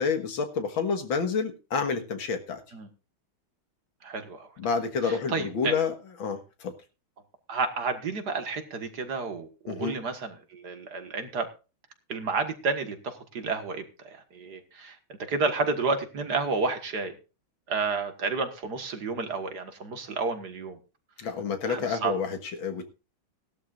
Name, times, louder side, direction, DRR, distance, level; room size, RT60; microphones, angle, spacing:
voice 1, 0.0-2.6 4.6-6.7 9.7-10.0 21.2-22.9, left 5 dB, 70° left, 6 dB, 2.3 m, -29 dB
voice 2, 4.0-4.5 5.0-5.7 7.5-11.5 12.1-15.0 15.3-17.1 17.7-20.8 21.7-22.1, right 4 dB, 50° right, 8 dB, 2.0 m, -31 dB
18.0 x 12.5 x 2.5 m, 0.31 s
omnidirectional pair, 2.3 m